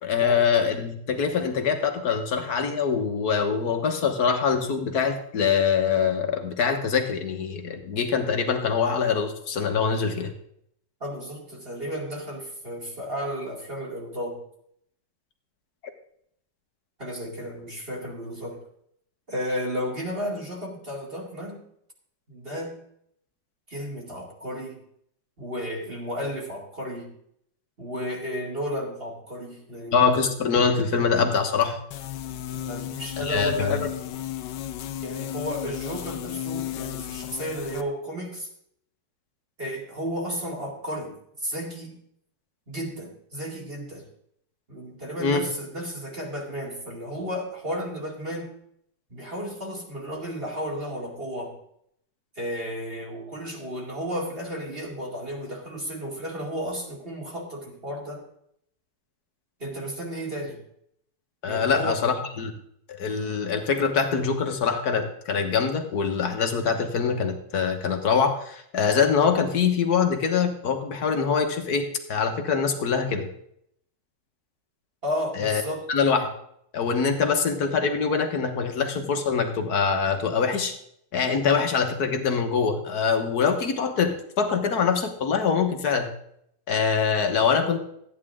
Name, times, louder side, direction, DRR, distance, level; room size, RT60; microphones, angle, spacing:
voice 1, 0.0-10.3 29.9-31.8 33.2-33.9 45.2-45.4 61.4-62.5 62.9-73.3 75.3-75.6 75.9-76.3 76.7-80.7 81.1-86.1 86.7-87.8, left 6 dB, 60° left, 5 dB, 1.8 m, -24 dB
voice 2, 11.0-14.4 17.0-18.6 19.3-21.6 22.3-22.8 23.7-24.8 25.4-27.1 27.8-30.0 32.7-33.8 35.0-38.5 39.6-42.0 42.7-44.0 44.7-48.5 49.1-51.5 52.4-58.3 59.6-60.6 61.5-62.0 75.0-75.9, equal, 30° right, -3 dB, 2.6 m, -33 dB
sound 1, 31.9-37.8, left 12 dB, 75° left, 1.3 m, -34 dB
14.0 x 9.7 x 3.7 m, 0.70 s
omnidirectional pair, 2.0 m